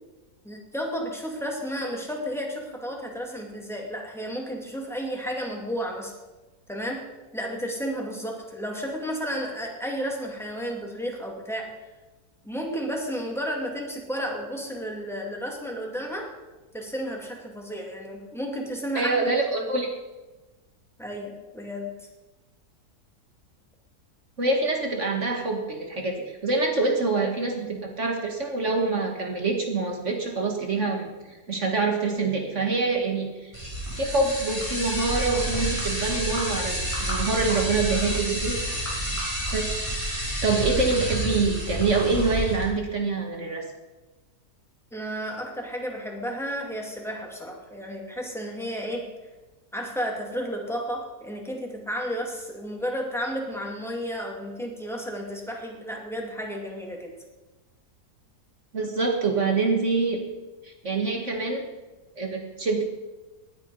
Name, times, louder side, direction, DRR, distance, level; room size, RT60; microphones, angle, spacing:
voice 1, 0.4-6.1 6.7-7.0 7.3-11.7 12.4-16.3 16.7-19.1 21.0-21.9 44.9-49.1 49.7-57.1, equal, ahead, 0 dB, 2.5 m, -32 dB
voice 2, 19.0-19.9 24.4-33.5 34.0-38.6 39.0-39.1 39.5-39.7 40.4-43.6 58.7-60.2 60.6-61.6 62.2-62.8, right 3 dB, 45° right, 1 dB, 2.1 m, -25 dB
sound 1, 33.5-42.6, right 1 dB, 20° right, 5.5 m, -29 dB
18.0 x 10.0 x 5.5 m, 1.1 s
omnidirectional pair, 1.7 m